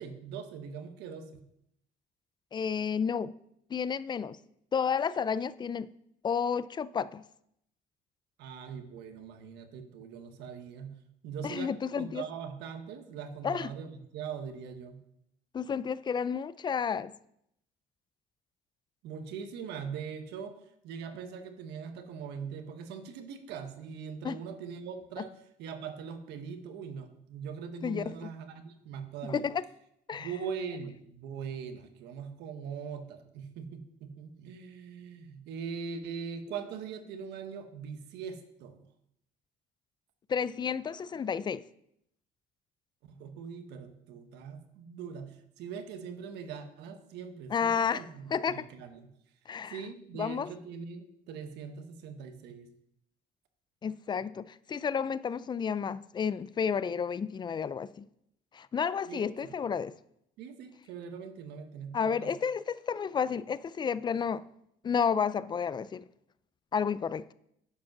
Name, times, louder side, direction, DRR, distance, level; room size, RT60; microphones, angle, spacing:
voice 1, 0.0-1.5 8.4-11.0 11.2-15.0 19.0-25.3 25.6-29.5 30.1-38.9 43.0-49.1 49.7-52.7 59.1-59.5 60.4-62.3, right 6 dB, 85° right, 1.2 m, -41 dB
voice 2, 2.5-3.3 3.7-4.4 4.7-5.9 6.2-7.2 11.4-12.2 13.4-13.7 15.5-17.1 24.2-24.4 27.8-28.3 29.3-29.6 30.1-30.3 40.3-41.6 47.5-48.0 48.3-48.7 49.5-49.8 50.2-50.5 53.8-58.1 58.5-59.9 61.9-64.4 64.8-66.0 66.7-67.3, left 6 dB, 25° left, 0.4 m, -31 dB
10.0 x 5.2 x 5.9 m
cardioid pair, 110°, 17 cm